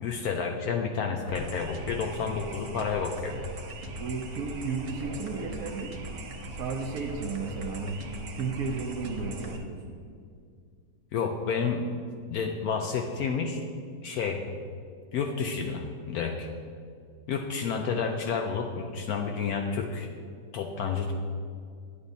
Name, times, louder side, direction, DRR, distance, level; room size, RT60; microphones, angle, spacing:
voice 1, 0.0-3.3 11.1-11.9 12.3-13.6 14.0-14.4 15.1-16.5 17.3-20.1 20.5-21.1, left 5 dB, 70° left, 3 dB, 0.9 m, -30 dB
sound 1, 1.2-9.6, right 1 dB, 80° right, 1.4 m, -40 dB
voice 2, 4.0-5.9 6.6-8.0 8.3-9.8, right 4 dB, 65° right, 2 dB, 1.0 m, -33 dB
9.8 x 8.2 x 2.7 m, 2.2 s
omnidirectional pair, 1.9 m